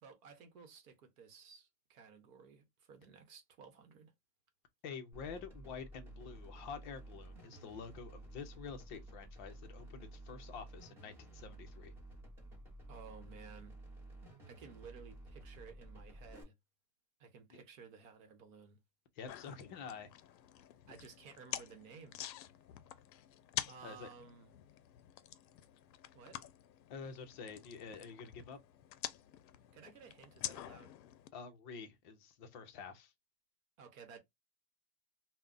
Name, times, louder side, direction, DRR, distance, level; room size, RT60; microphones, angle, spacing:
voice 1, 0.0-4.1 12.9-13.8 14.5-16.5 17.2-18.8 20.9-22.2 23.7-24.5 26.1-26.4 29.7-30.9 33.8-34.2, right 6 dB, 55° right, 0.9 m, -55 dB
voice 2, 4.8-11.9 17.5-17.6 19.2-20.1 23.8-24.1 26.9-28.6 31.3-33.1, left 6 dB, 30° left, 0.4 m, -48 dB
sound 1, 5.1-16.4, right 2 dB, 5° right, 0.6 m, -53 dB
sound 2, 19.3-31.3, left 12 dB, 90° left, 0.6 m, -47 dB
2.3 x 2.0 x 3.7 m
supercardioid pair, 145°, 50 cm